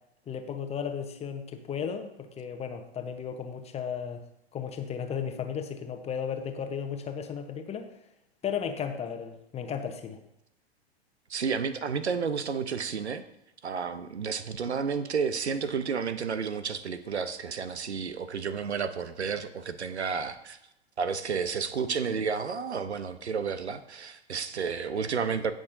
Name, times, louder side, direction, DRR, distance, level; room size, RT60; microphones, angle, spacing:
voice 1, 0.3-4.2 4.5-7.9 8.4-10.2, left 7 dB, 20° left, 7 dB, 1.0 m, -34 dB
voice 2, 11.3-13.2 13.6-20.6 21.0-25.5, right 6 dB, 80° right, 12 dB, 0.9 m, -31 dB
17.0 x 6.3 x 2.7 m, 0.82 s
figure-of-eight pair, 100°, 33 cm